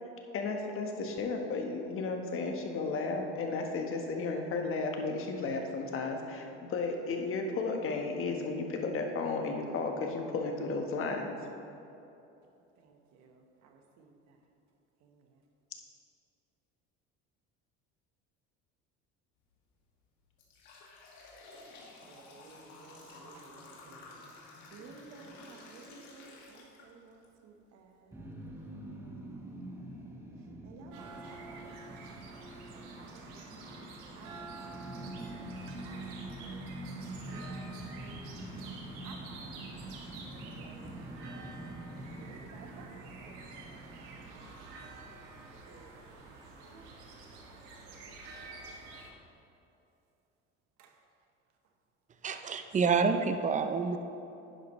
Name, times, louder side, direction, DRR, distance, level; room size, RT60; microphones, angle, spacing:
voice 1, 0.3-11.3, left 3 dB, 45° left, 3 dB, 1.3 m, -34 dB
voice 2, 12.8-14.4 15.0-15.4 22.0-24.3 24.7-29.5 30.6-34.7 35.0-38.5 39.0-39.6 39.9-44.9 45.5-46.3 46.6-48.9 50.8-51.0, right 4 dB, 65° right, 3 dB, 1.3 m, -57 dB
sound 1, 19.4-19.6 20.1-27.3 27.7-27.8 28.7-28.8 29.3-29.4 29.8-30.0, left 3 dB, 70° left, 2.2 m, -53 dB
sound 2, 28.1-45.3, right 1 dB, 10° right, 1.3 m, -45 dB
sound 3, 30.9-49.1, right 3 dB, 90° right, 1.4 m, -49 dB
voice 3, 52.2-54.0, right 5 dB, 25° right, 8 dB, 0.6 m, -28 dB
11.0 x 9.8 x 3.2 m, 2.8 s
cardioid pair, 115°, 30 cm